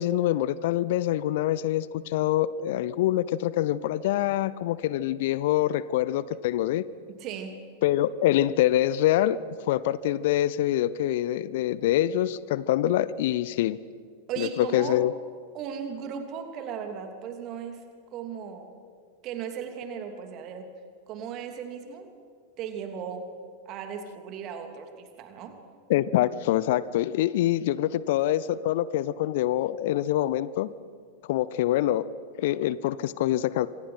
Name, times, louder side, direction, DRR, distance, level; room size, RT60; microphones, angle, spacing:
voice 1, 0.0-6.8 7.8-9.4 9.7-13.8 14.4-15.1 25.9-30.7 31.3-32.0 32.4-33.7, left 13 dB, 50° left, 19 dB, 0.7 m, -25 dB
voice 2, 7.2-7.6 14.3-15.0 15.5-17.8 18.1-18.7 19.2-20.7 21.1-22.1 22.6-23.3 23.6-25.5, right 7 dB, 35° right, 6 dB, 3.1 m, -36 dB
28.0 x 25.5 x 5.9 m, 2.1 s
figure-of-eight pair, 90°, 0 cm